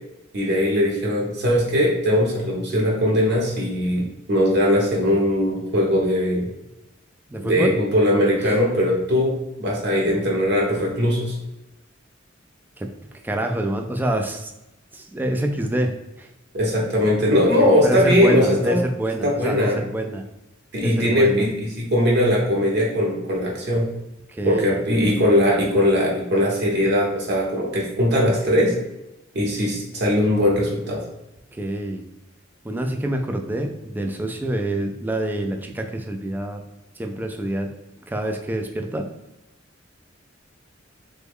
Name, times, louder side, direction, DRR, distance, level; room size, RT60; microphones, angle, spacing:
voice 1, 0.3-6.5 7.4-11.3 16.5-18.8 19.2-19.8 20.7-23.9 24.4-28.7 29.3-31.0, equal, 60° right, -2 dB, 0.9 m, -20 dB
voice 2, 7.3-7.7 8.4-8.6 12.8-12.9 13.2-14.5 14.9-16.3 17.6-20.2 20.8-21.5 24.3-24.8 31.5-32.1 32.6-36.6 37.0-37.7 38.1-39.1, right 1 dB, 10° right, 3 dB, 0.3 m, -26 dB
3.4 x 2.1 x 3.5 m, 0.94 s
head